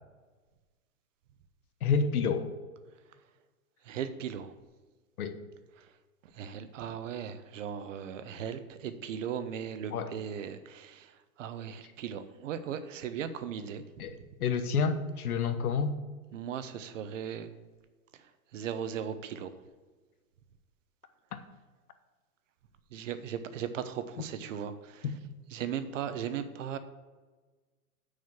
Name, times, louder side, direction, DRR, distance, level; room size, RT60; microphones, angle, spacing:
voice 1, 1.8-2.5 5.2-5.4 9.9-10.1 14.0-16.0 25.0-25.2, left 5 dB, 75° left, 9 dB, 1.2 m, -29 dB
voice 2, 3.9-4.5 6.4-11.1 11.4-13.8 16.3-17.5 18.5-19.5 22.9-25.0 25.5-26.8, right 8 dB, 55° right, 11 dB, 0.9 m, -37 dB
6.5 x 6.5 x 7.2 m, 1.3 s
hypercardioid pair, 155°, 44 cm